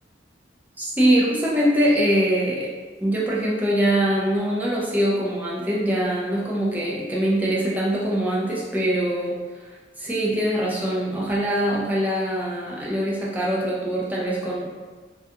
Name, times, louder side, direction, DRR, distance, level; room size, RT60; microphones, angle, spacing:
voice 1, 0.8-2.7 3.0-9.3 10.0-14.7, right 1 dB, 10° right, -5 dB, 0.4 m, -23 dB
2.4 x 2.2 x 2.6 m, 1.4 s
head